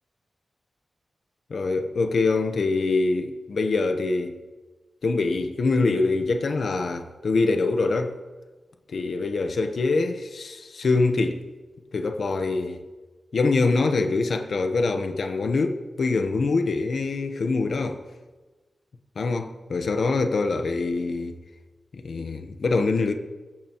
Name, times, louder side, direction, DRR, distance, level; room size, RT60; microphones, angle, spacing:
voice 1, 1.5-4.4 5.0-8.2 8.9-11.5 11.9-12.9 13.3-18.0 19.2-21.4 21.9-23.1, left 3 dB, 70° left, 1.0 m, -24 dB
23.5 x 8.8 x 3.0 m
cardioid pair, 70°, 0 cm